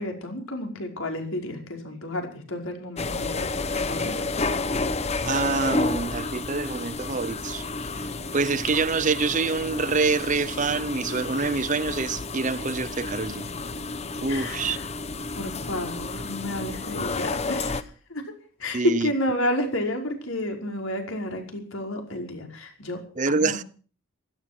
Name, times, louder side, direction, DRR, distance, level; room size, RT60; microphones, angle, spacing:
voice 1, 0.0-3.5 3.9-4.3 14.3-14.8 15.4-17.8 18.1-18.3 18.6-23.6, left 1 dB, 80° left, 5.3 m, -31 dB
sound 1, 3.0-17.8, left 3 dB, 30° left, 0.9 m, -31 dB
voice 2, 5.3-7.7 8.3-13.5 14.2-14.8 18.7-19.1 23.2-23.6, right 4 dB, 35° right, 0.7 m, -26 dB
17.0 x 14.5 x 6.0 m
head